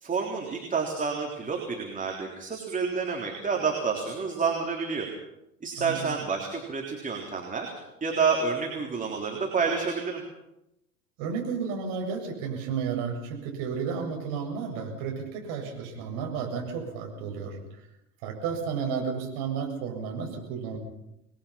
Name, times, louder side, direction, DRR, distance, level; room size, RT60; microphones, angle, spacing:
voice 1, 0.0-5.1 5.6-7.7 8.0-10.2, right 5 dB, 15° right, 0 dB, 3.7 m, -29 dB
voice 2, 11.2-17.6 18.2-20.8, right 6 dB, 50° right, 2 dB, 7.4 m, -32 dB
27.5 x 20.5 x 5.8 m, 0.86 s
figure-of-eight pair, 80°, 46 cm